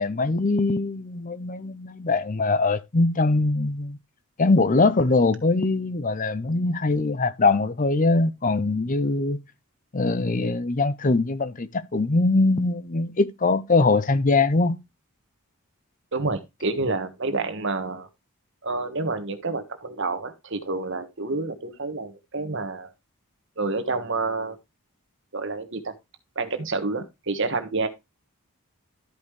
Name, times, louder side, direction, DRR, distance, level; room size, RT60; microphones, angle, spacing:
voice 1, 0.0-4.0 4.4-9.4 9.9-14.8, left 3 dB, 35° left, 0.6 m, -22 dB
voice 2, 16.1-18.1 18.6-22.9 23.6-24.6 25.3-25.9 26.3-27.9, right 3 dB, 55° right, 1.4 m, -28 dB
13.0 x 5.4 x 3.2 m
head